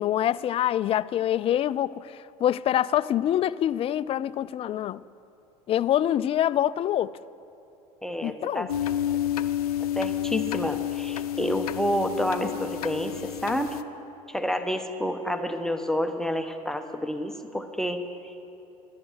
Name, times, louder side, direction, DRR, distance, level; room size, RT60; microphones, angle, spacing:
voice 1, 0.0-5.0 5.7-7.1 8.2-8.7, left 11 dB, 30° left, 0.3 m, -25 dB
voice 2, 8.0-8.7 10.0-13.8 14.3-18.4, equal, ahead, 0.9 m, -29 dB
sound 1, 8.7-13.8, left 11 dB, 75° left, 0.6 m, -30 dB
13.5 x 11.0 x 6.5 m
hypercardioid pair, 75°, 19 cm